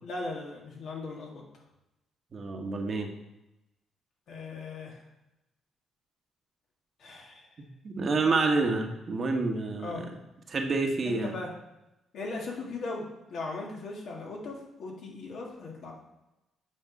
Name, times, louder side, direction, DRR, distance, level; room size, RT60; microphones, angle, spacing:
voice 1, 0.0-1.4 4.3-5.0 7.0-7.5 9.8-10.0 11.0-11.5 12.1-16.0, left 3 dB, 70° left, -1 dB, 1.9 m, -38 dB
voice 2, 2.3-3.1 7.6-10.1 10.5-11.4, right 3 dB, 45° right, 3 dB, 1.2 m, -28 dB
8.5 x 5.0 x 4.0 m, 0.96 s
cardioid pair, 90°, 0 cm